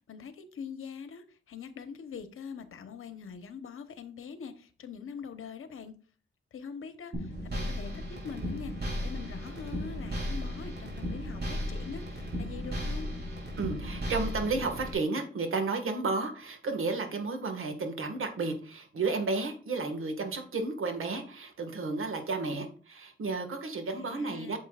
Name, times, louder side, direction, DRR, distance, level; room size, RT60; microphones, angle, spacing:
voice 1, 0.1-5.9 6.5-13.1 23.9-24.6, left 6 dB, 85° left, 1.0 m, -43 dB
sound 1, 7.1-14.9, equal, 50° right, 3.3 m, -35 dB
voice 2, 13.6-24.6, right 3 dB, 80° right, 1.7 m, -32 dB
8.9 x 7.2 x 2.4 m
wide cardioid pair, 135°, 21 cm